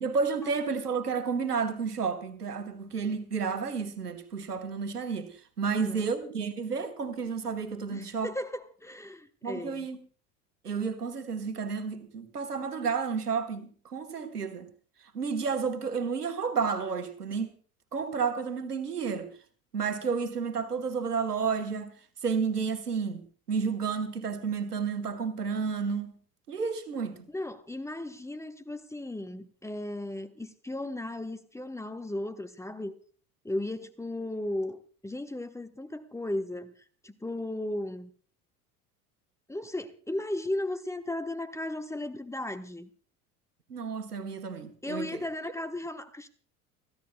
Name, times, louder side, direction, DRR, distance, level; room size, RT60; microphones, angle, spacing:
voice 1, 0.0-8.3 9.4-10.0 10.6-14.7 15.1-17.5 17.9-19.3 19.7-21.9 22.2-26.2 26.5-27.3 43.7-45.3, right 5 dB, 85° right, 1.4 m, -31 dB
voice 2, 5.7-6.2 7.9-9.9 27.3-32.9 33.4-36.7 37.0-38.1 39.5-42.9 44.8-46.3, left 1 dB, 5° left, 1.0 m, -36 dB
30.0 x 11.5 x 2.2 m
figure-of-eight pair, 70°, 45 cm